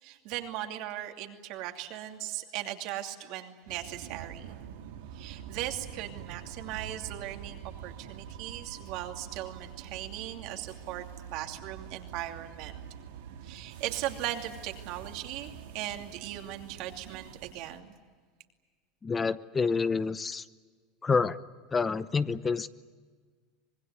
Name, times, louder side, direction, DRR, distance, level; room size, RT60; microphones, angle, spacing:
voice 1, 0.0-4.6 5.1-11.0 11.3-12.8 13.4-17.9, right 13 dB, 65° right, 4 dB, 2.7 m, -38 dB
sound 1, 3.7-17.8, right 8 dB, 85° right, 2.0 m, -45 dB
voice 2, 19.0-20.4 21.0-21.4 21.7-22.7, left 4 dB, 20° left, 14 dB, 0.8 m, -28 dB
25.5 x 20.5 x 9.5 m, 1.5 s
supercardioid pair, 110°, 0 cm